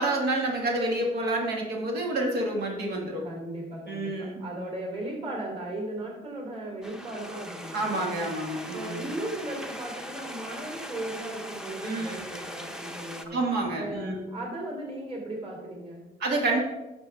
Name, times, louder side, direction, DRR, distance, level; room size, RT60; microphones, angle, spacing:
voice 1, 0.0-3.2 3.9-4.4 7.7-9.1 11.8-12.2 13.3-14.2 16.2-16.6, right 2 dB, 70° right, 0 dB, 2.0 m, -28 dB
voice 2, 3.2-8.2 8.7-13.4 13.7-16.1, right 1 dB, 35° right, -1 dB, 3.2 m, -37 dB
sound 1, 6.8-13.3, equal, 5° right, 0.8 m, -40 dB
11.0 x 6.9 x 3.5 m, 1.1 s
cardioid pair, 110°, 17 cm